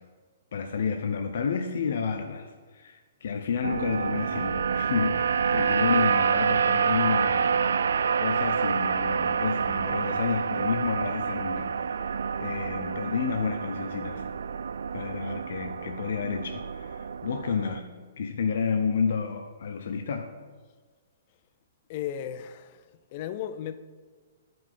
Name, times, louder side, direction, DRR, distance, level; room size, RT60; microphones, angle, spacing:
voice 1, 0.5-7.5 8.2-12.0 12.4-14.2 14.9-17.9 18.2-20.3, left 6 dB, 60° left, 0.7 m, -30 dB
sound 1, 3.6-17.8, right 6 dB, 85° right, 0.3 m, -27 dB
voice 2, 21.9-22.8 23.1-23.8, left 10 dB, 35° left, 0.4 m, -35 dB
12.5 x 5.2 x 5.5 m
hypercardioid pair, 170°, 0 cm